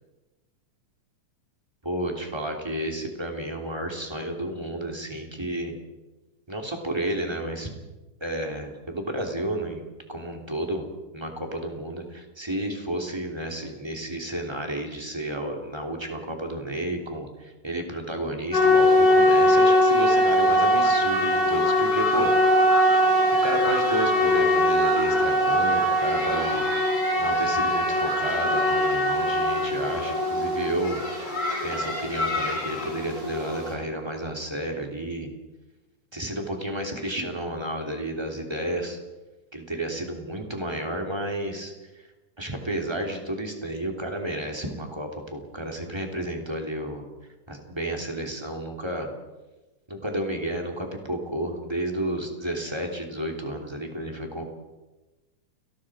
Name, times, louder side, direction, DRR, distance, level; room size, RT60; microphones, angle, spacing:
voice 1, 1.8-5.7 6.5-7.7 8.2-10.9 11.1-22.3 23.4-26.6 27.2-31.0 31.6-35.3 36.1-39.0 39.5-41.7 42.4-47.0 47.5-49.1 49.9-54.4, right 1 dB, 10° right, 2 dB, 2.8 m, -31 dB
sound 1, 18.5-33.7, left 1 dB, 45° left, 7.8 m, -22 dB
30.0 x 19.0 x 5.0 m, 1.1 s
omnidirectional pair, 3.7 m